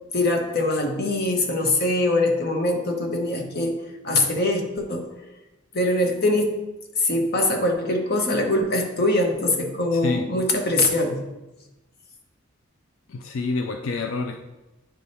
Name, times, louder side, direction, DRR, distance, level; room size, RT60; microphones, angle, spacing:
voice 1, 0.1-5.1 5.7-6.6 7.0-11.2, left 2 dB, 55° left, 2 dB, 1.0 m, -23 dB
voice 2, 9.9-10.3 13.1-14.4, left 3 dB, 80° left, 4 dB, 0.4 m, -27 dB
9.2 x 3.4 x 4.2 m, 1.0 s
head